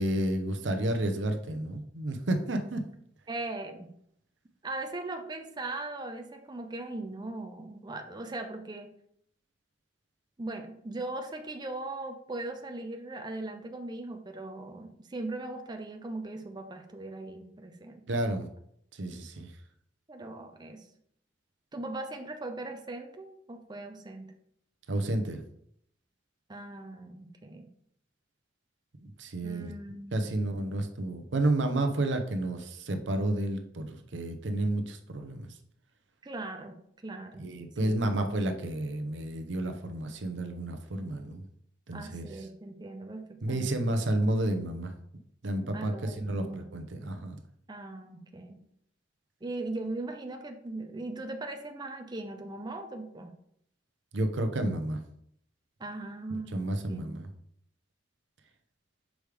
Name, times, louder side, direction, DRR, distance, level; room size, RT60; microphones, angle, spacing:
voice 1, 0.0-2.8 18.1-18.5 18.9-19.5 24.9-25.4 29.0-29.7 30.1-35.5 37.4-41.5 41.9-42.3 43.4-44.9 45.4-45.9 46.2-47.4 54.1-55.0 56.5-57.3, right 1 dB, 80° right, 7 dB, 0.7 m, -31 dB
voice 2, 3.3-3.9 4.6-8.9 10.4-18.0 20.1-20.9 21.7-24.3 26.5-27.7 29.4-30.3 36.2-36.8 37.0-37.4 37.8-38.0 41.9-43.8 45.7-46.7 47.7-48.6 49.4-53.4 55.8-57.2, right 2 dB, 25° right, 5 dB, 0.6 m, -39 dB
6.2 x 4.9 x 3.4 m, 0.69 s
head